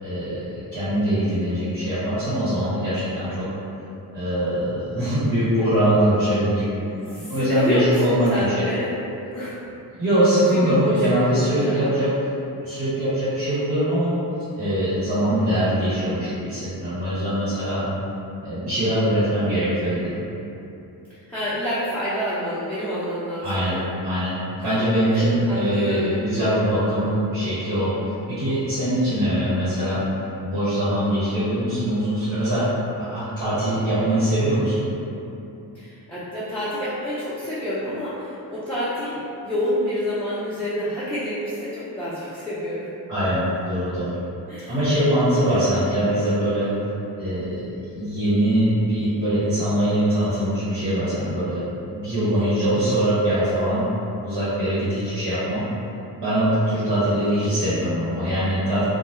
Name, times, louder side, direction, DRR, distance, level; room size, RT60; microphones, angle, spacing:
voice 1, 0.0-3.5 4.1-6.6 7.2-8.5 10.0-12.1 12.6-14.2 14.6-17.9 18.4-20.2 23.4-23.8 24.0-24.3 24.6-27.9 28.3-30.0 30.4-32.7 33.0-34.8 43.1-44.2 44.7-46.7 47.2-51.6 51.9-53.8 54.2-55.6 56.2-58.8, right 1 dB, 85° right, -13 dB, 1.1 m, -22 dB
voice 2, 7.0-9.0 9.3-9.6 10.5-11.8 21.1-23.9 25.1-26.1 35.7-42.9 44.5-44.8 45.2-45.8 56.7-57.6, equal, 5° left, -13 dB, 0.5 m, -28 dB
2.2 x 2.1 x 2.9 m, 2.8 s
cardioid pair, 75°, 42 cm